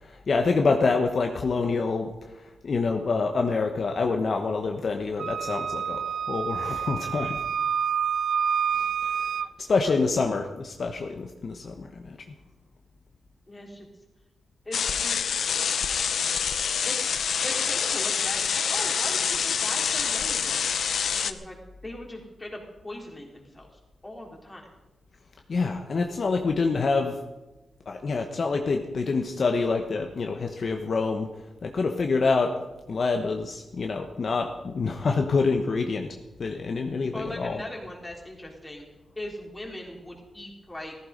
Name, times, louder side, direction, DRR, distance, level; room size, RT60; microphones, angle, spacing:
voice 1, 0.3-2.1 2.6-7.4 8.7-8.9 9.2-9.3 9.7-12.2 25.5-27.2 27.9-31.3 31.6-32.5 32.9-36.1 36.4-37.6, left 4 dB, 50° left, 3 dB, 1.1 m, -26 dB
Wind instrument woodwind instrument, 5.2-9.5, right 7 dB, 70° right, 0.4 m, -28 dB
voice 2, 13.5-13.9 14.7-15.2 16.9-17.1 17.4-20.7 21.2-23.7 24.0-24.7 37.1-38.8 39.2-41.0, left 1 dB, 15° left, -1 dB, 3.7 m, -39 dB
sound 1, 14.7-21.3, left 7 dB, 75° left, 0.8 m, -26 dB
15.0 x 14.5 x 5.2 m, 1.1 s
wide cardioid pair, 115°, 0 cm